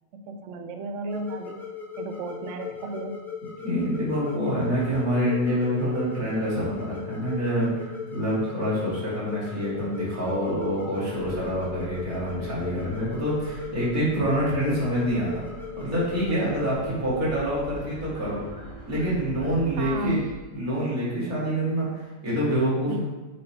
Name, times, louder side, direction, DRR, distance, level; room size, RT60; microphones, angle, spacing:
voice 1, 0.1-1.6 2.0-3.1 19.8-20.2 22.9-23.0, right 2 dB, 70° right, 5 dB, 0.7 m, -33 dB
sound 1, 1.1-16.7, left 6 dB, ahead, 0.6 m, -38 dB
voice 2, 3.6-15.4 15.8-18.4 18.9-20.3 20.5-23.0, equal, 55° right, -8 dB, 2.8 m, -26 dB
sound 2, 11.1-20.3, right 1 dB, 20° right, 1.6 m, -43 dB
6.5 x 4.0 x 4.2 m, 1.3 s
omnidirectional pair, 1.7 m